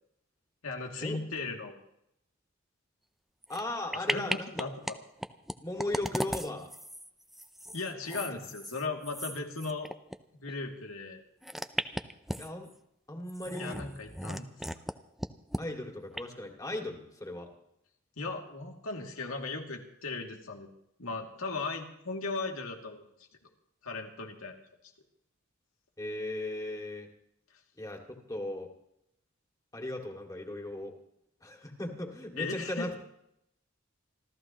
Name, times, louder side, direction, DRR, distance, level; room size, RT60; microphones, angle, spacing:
voice 1, 0.6-1.8 3.9-5.0 7.7-9.9 10.3-11.2 13.6-14.8 18.2-20.7 21.0-23.0 23.8-24.6 32.4-33.0, left 3 dB, 85° left, 2 dB, 2.6 m, -37 dB
sound 1, 3.4-3.6 3.9-5.0 5.2-10.2 10.5-10.6 11.4-12.7 13.3-14.9 15.2-15.6 16.1-16.2, equal, ahead, 0.6 m, -36 dB
voice 2, 3.5-4.7 5.6-6.7 12.4-12.7 13.1-13.8 15.6-17.5 26.0-27.1 27.8-28.7 29.7-31.0 31.4-32.9, left 1 dB, 15° left, 2 dB, 2.4 m, -37 dB
27.5 x 14.0 x 3.0 m, 0.76 s
head